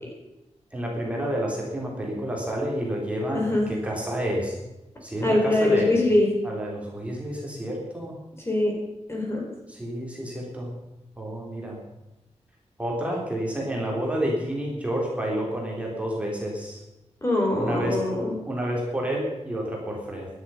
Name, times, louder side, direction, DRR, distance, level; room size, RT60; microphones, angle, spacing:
voice 1, 0.7-4.6 5.0-5.9 6.4-8.2 9.7-10.7 11.2-11.8 12.8-16.8 17.5-18.0 18.5-20.3, equal, 10° right, -2 dB, 3.6 m, -29 dB
voice 2, 3.3-3.7 5.2-6.3 8.5-8.8 9.1-9.4 17.2-18.3, left 1 dB, 20° left, 0 dB, 4.0 m, -22 dB
17.0 x 12.0 x 5.7 m, 0.97 s
wide cardioid pair, 170°, 11 cm